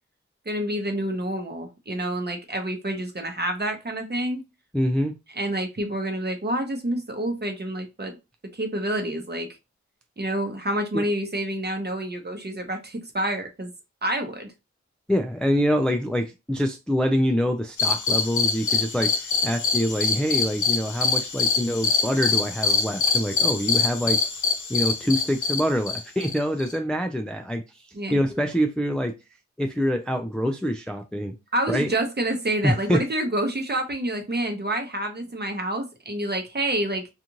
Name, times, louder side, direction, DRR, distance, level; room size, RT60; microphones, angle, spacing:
voice 1, 0.5-4.4 5.4-8.2 8.5-9.5 10.2-13.7 14.0-14.5 27.9-28.2 31.5-37.1, right 1 dB, 35° right, 0.9 m, -28 dB
voice 2, 4.7-5.1 10.9-11.0 15.1-24.2 24.7-29.1 29.6-31.3 31.7-31.9 32.6-33.0, equal, 5° left, 0.3 m, -25 dB
sound 1, 17.8-26.8, left 5 dB, 80° left, 0.7 m, -24 dB
2.5 x 2.5 x 2.9 m
cardioid pair, 45°, 29 cm